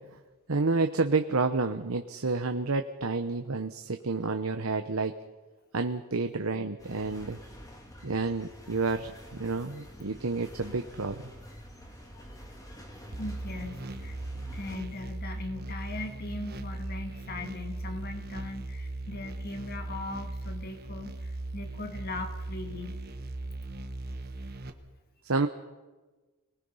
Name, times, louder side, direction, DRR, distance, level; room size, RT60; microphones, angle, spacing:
voice 1, 0.5-5.2 5.7-7.4 8.0-11.2 25.2-25.5, right 3 dB, 80° right, 7 dB, 0.9 m, -29 dB
sound 1, 6.8-14.8, equal, 15° left, 2.8 m, -48 dB
sound 2, 13.1-24.7, right 2 dB, 45° right, 1.5 m, -38 dB
voice 2, 13.2-14.2 14.5-23.0, left 2 dB, 45° left, 5 dB, 2.1 m, -39 dB
26.0 x 20.5 x 5.6 m, 1.2 s
head